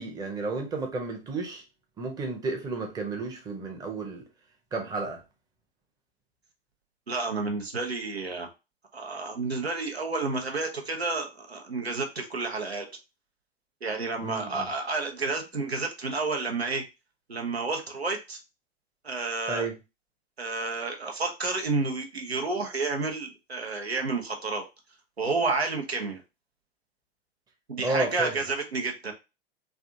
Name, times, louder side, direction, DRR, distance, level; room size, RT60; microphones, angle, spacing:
voice 1, 0.0-1.6 2.0-4.3 4.7-5.2 14.2-14.7 19.5-19.7 27.8-28.3, right 3 dB, 10° right, 0.7 m, -32 dB
voice 2, 7.1-8.5 8.9-12.9 13.8-16.8 17.3-18.4 19.0-19.7 20.4-24.6 25.2-26.2 27.7-29.1, right 3 dB, 85° right, 0.8 m, -30 dB
3.3 x 2.4 x 2.7 m
figure-of-eight pair, 95°, 31 cm